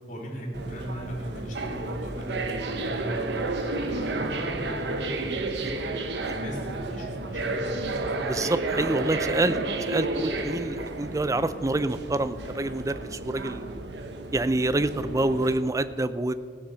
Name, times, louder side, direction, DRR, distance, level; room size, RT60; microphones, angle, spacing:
voice 1, 0.1-3.3 3.6-5.7 6.3-8.0, equal, 50° left, -2 dB, 3.3 m, -37 dB
sound 1, 0.5-15.6, right 2 dB, 75° right, 1.0 m, -32 dB
voice 2, 8.2-9.6 9.9-13.8 14.3-16.3, right 2 dB, 20° right, 13 dB, 0.5 m, -27 dB
16.0 x 7.0 x 6.8 m, 2.1 s
head